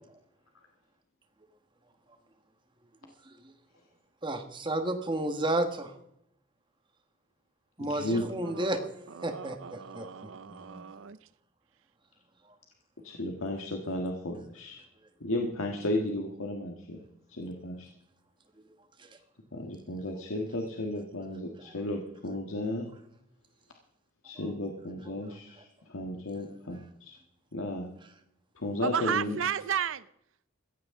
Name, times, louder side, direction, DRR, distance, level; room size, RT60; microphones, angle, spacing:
voice 1, 4.2-5.9 7.8-8.8 9.2-10.8 19.0-19.1, right 1 dB, 20° right, 1.4 m, -32 dB
voice 2, 7.8-8.2 13.0-14.8 15.2-17.0 17.3-17.9 19.5-22.9 24.2-27.2 27.5-27.9 28.5-29.4, left 1 dB, 75° left, 1.6 m, -34 dB
voice 3, 8.4-8.9 9.1-11.2 28.8-30.0, right 8 dB, 65° right, 0.5 m, -33 dB
15.5 x 15.0 x 3.7 m
head